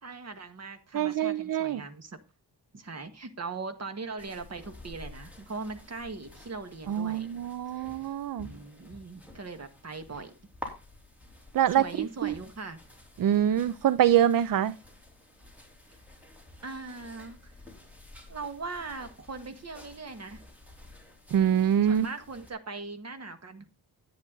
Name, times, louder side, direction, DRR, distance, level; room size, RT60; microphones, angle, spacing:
voice 1, 0.0-2.2 2.7-7.3 7.8-10.3 11.7-12.8 16.6-17.5 18.3-20.4 21.8-23.7, right 3 dB, 40° right, 1.7 m, -40 dB
voice 2, 0.9-1.8 6.9-8.5 11.5-12.3 13.2-14.7 21.3-22.1, right 10 dB, 55° right, 0.6 m, -25 dB
sound 1, 4.2-22.5, left 1 dB, 5° right, 3.3 m, -50 dB
11.0 x 9.3 x 3.9 m
cardioid pair, 105°, 40 cm